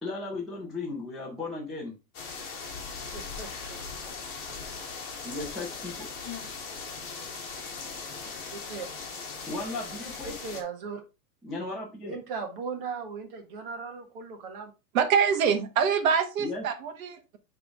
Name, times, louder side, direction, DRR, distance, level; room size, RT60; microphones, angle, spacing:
voice 1, 0.0-2.0 5.2-6.1 9.5-10.3 11.4-12.2 16.4-16.6, left 2 dB, ahead, 0.7 m, -36 dB
sound 1, 2.1-10.6, left 5 dB, 25° left, 1.7 m, -39 dB
voice 2, 3.1-3.8 8.5-8.9 10.2-11.0 12.1-14.7, right 5 dB, 35° right, 1.4 m, -38 dB
voice 3, 14.9-17.4, right 7 dB, 60° right, 1.3 m, -25 dB
9.3 x 3.5 x 3.6 m
supercardioid pair, 175°, 46 cm